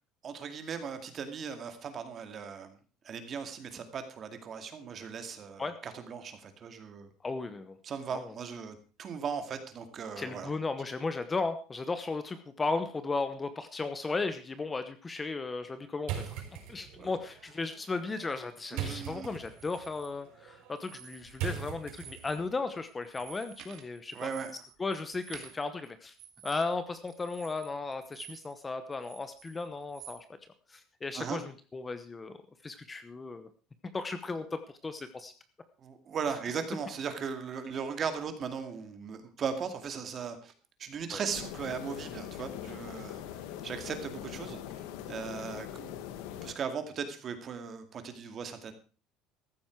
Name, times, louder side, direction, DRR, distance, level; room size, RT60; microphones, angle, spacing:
voice 1, 0.2-2.8 3.0-7.1 7.8-10.5 17.0-17.1 18.7-19.3 24.1-24.5 31.1-31.4 35.8-40.5 40.8-45.9 46.4-48.7, right 6 dB, 30° right, 8 dB, 2.3 m, -38 dB
voice 2, 7.2-7.8 8.1-8.3 10.2-24.3 24.8-26.1 26.4-30.2 30.7-32.4 32.6-33.5 33.9-35.3 41.1-41.2, left 3 dB, 15° left, 10 dB, 0.9 m, -35 dB
sound 1, 16.0-22.5, right 9 dB, 70° right, 5.7 m, -41 dB
sound 2, 19.5-20.1 20.7-21.5 21.8-22.5 22.8-28.6 28.9-30.2, right 10 dB, 50° right, 2.4 m, -51 dB
sound 3, 41.3-46.5, left 10 dB, 80° left, 1.7 m, -42 dB
14.5 x 12.5 x 4.6 m, 0.38 s
cardioid pair, 160°, 0 cm